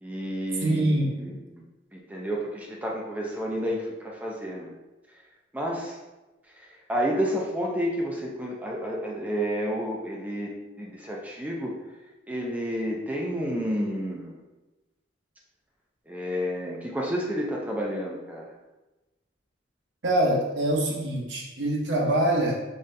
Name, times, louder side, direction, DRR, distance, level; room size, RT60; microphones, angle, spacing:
voice 1, 0.0-1.6 1.9-4.7 5.5-6.0 6.6-10.5 10.8-11.7 12.3-14.4 16.1-18.5, equal, 10° right, -2 dB, 0.4 m, -30 dB
voice 2, 0.6-1.1 20.0-22.6, right 1 dB, 75° right, -2 dB, 0.8 m, -24 dB
3.9 x 3.2 x 2.6 m, 1.1 s
head